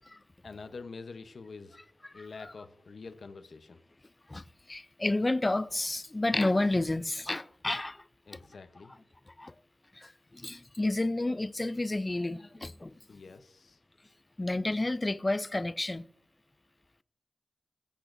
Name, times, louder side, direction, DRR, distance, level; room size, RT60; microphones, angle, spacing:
voice 1, 0.1-1.8 2.1-3.8 8.3-8.9 13.1-13.8, left 4 dB, 60° left, 0.7 m, -46 dB
voice 2, 4.3-8.0 9.4-9.5 10.0-12.9 14.4-16.0, left 2 dB, 20° left, 0.4 m, -30 dB
22.5 x 8.4 x 2.6 m
wide cardioid pair, 115°, 0 cm